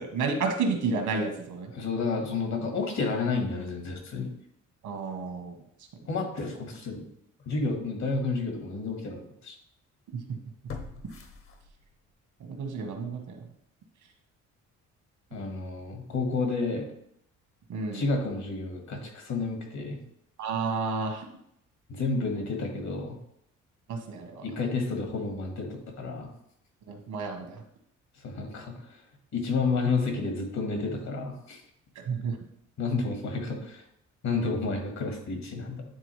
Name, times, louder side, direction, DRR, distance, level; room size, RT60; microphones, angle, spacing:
voice 1, 0.0-1.7 4.8-5.6 10.1-10.2 12.6-13.5 17.7-18.0 20.4-21.3 23.9-24.4 26.9-27.6 31.9-32.4, right 4 dB, 75° right, 4 dB, 1.4 m, -31 dB
voice 2, 1.7-4.3 6.1-7.0 7.5-9.6 15.3-16.9 17.9-20.0 21.9-23.1 24.4-26.3 28.2-28.7 29.3-31.6 32.8-33.8 34.2-35.8, left 3 dB, 65° left, 3 dB, 1.7 m, -30 dB
sound 1, 7.4-7.5 8.1-8.2 10.7-12.1 12.5-12.6, left 4 dB, 45° left, 0.9 m, -43 dB
9.0 x 3.8 x 3.2 m, 0.73 s
cardioid pair, 90°, 30 cm